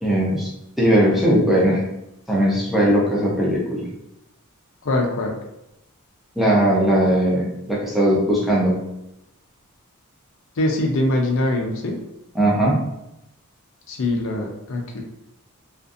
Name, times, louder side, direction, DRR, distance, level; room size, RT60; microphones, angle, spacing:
voice 1, 0.0-0.5 0.8-1.8 2.3-3.9 6.4-8.7 12.3-12.8, right 1 dB, ahead, -5 dB, 0.5 m, -19 dB
voice 2, 4.8-5.4 10.6-11.9 13.9-15.0, left 1 dB, 60° left, 1 dB, 0.5 m, -23 dB
2.5 x 2.4 x 2.5 m, 0.84 s
head